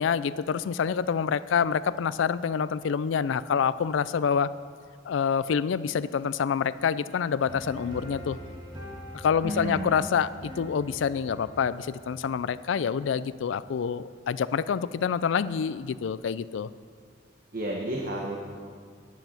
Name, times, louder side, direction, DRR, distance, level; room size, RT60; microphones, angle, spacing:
voice 1, 0.0-4.5 5.1-8.4 9.1-10.3 10.6-16.7, left 7 dB, 80° left, 16 dB, 0.4 m, -27 dB
sound 1, 7.5-12.7, equal, 25° right, 1.7 m, -43 dB
voice 2, 9.4-9.9 17.5-18.4, right 1 dB, 50° right, -1 dB, 1.1 m, -31 dB
10.5 x 9.0 x 5.8 m, 2.1 s
head